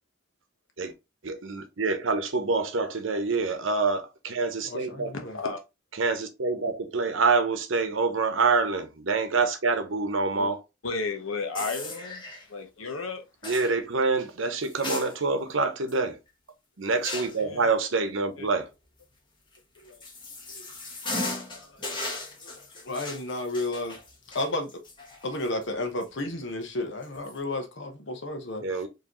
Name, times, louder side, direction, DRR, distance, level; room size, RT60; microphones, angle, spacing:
voice 1, 1.2-5.1 6.0-10.6 13.4-16.2 16.8-18.7 28.6-28.9, right 4 dB, 70° right, 0.8 m, -26 dB
voice 2, 4.6-5.4 12.8-12.9 19.8-20.0 20.5-20.6 21.7-21.8 22.4-24.0 24.3-24.8 25.2-28.8, left 2 dB, 60° left, 1.0 m, -33 dB
voice 3, 5.1-5.6 10.3-10.5 10.8-13.2 17.3-17.7 18.4-18.5, left 4 dB, 85° left, 1.1 m, -33 dB
sound 1, 11.5-12.5 13.4-13.7 14.6-15.5 15.9-16.0 17.0-17.5 19.5-25.6 26.0-26.1 27.0-27.3, left 2 dB, 25° left, 1.2 m, -37 dB
4.8 x 3.1 x 3.0 m
head